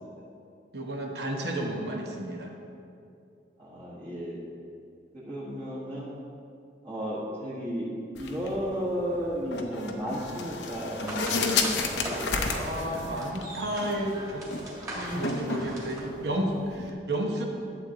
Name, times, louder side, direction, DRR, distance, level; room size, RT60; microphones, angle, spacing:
voice 1, 0.7-2.5 12.5-14.5 14.9-17.5, right 1 dB, 65° right, 1 dB, 1.0 m, -32 dB
voice 2, 3.6-4.4 5.1-6.1 6.8-12.6, equal, 35° right, -9 dB, 1.5 m, -34 dB
sound 1, 8.2-16.9, left 4 dB, 85° left, 0.7 m, -33 dB
sound 2, 10.9-16.0, equal, 20° right, 1.8 m, -39 dB
12.0 x 7.6 x 2.9 m, 2.5 s
head